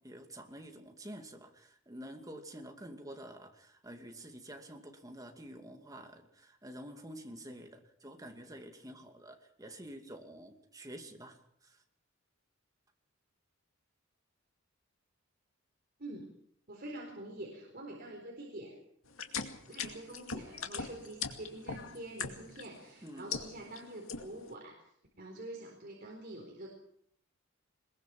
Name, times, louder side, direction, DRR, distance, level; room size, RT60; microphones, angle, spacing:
voice 1, 0.0-11.8 23.0-23.4, right 1 dB, 15° right, 4 dB, 2.5 m, -49 dB
voice 2, 16.7-18.8 19.7-24.7 25.2-26.7, right 1 dB, 50° right, 0 dB, 4.4 m, -46 dB
sound 1, 19.1-22.7 23.1-23.8 24.1-24.5, left 6 dB, 90° left, 2.4 m, -39 dB
22.0 x 22.0 x 6.1 m, 0.68 s
head